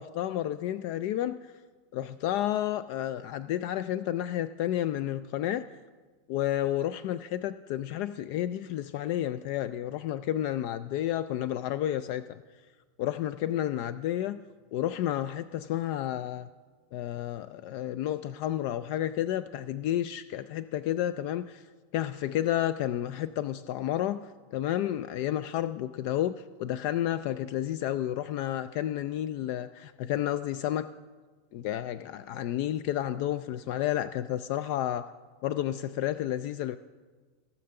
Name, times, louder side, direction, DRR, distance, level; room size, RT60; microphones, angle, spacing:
voice 1, 0.0-1.5 1.9-5.6 6.3-12.4 13.0-14.4 14.7-16.5 16.9-21.6 21.9-24.2 24.5-26.3 26.6-30.9 31.5-35.1 35.4-36.8, left 12 dB, 50° left, 14 dB, 0.3 m, -31 dB
16.5 x 5.8 x 6.5 m, 1.4 s
supercardioid pair, 160°, 0 cm